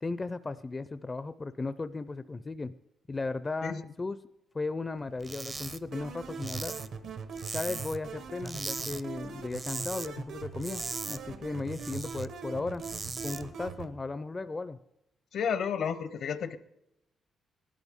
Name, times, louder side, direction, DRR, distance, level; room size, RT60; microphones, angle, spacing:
voice 1, 0.0-2.7 3.1-4.2 4.5-6.7 7.5-12.8 13.2-14.8, left 3 dB, 25° left, 13 dB, 0.4 m, -36 dB
sound 1, 5.2-5.8 6.1-8.1 8.4-9.0 9.3-10.1 10.4-12.3 12.6-13.4, right 3 dB, 30° right, 0.5 m, -39 dB
sound 2, 5.9-13.9, right 5 dB, 75° right, 1.2 m, -41 dB
voice 2, 15.3-16.6, left 7 dB, 70° left, 14 dB, 0.7 m, -31 dB
18.0 x 12.0 x 3.6 m, 0.86 s
cardioid pair, 100°, 0 cm